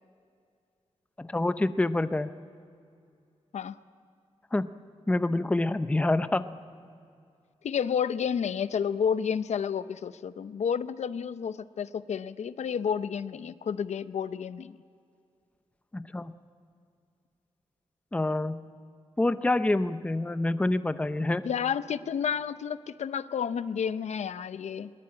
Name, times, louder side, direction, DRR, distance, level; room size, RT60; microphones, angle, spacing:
voice 1, 1.2-2.3 4.5-4.7 5.1-6.5 15.9-16.3 18.1-18.6 19.2-21.4, left 2 dB, 10° left, 12 dB, 0.6 m, -27 dB
voice 2, 7.6-14.8 21.4-24.9, left 7 dB, 85° left, 14 dB, 0.6 m, -30 dB
21.5 x 19.5 x 8.6 m, 2.4 s
wide cardioid pair, 160°, 11 cm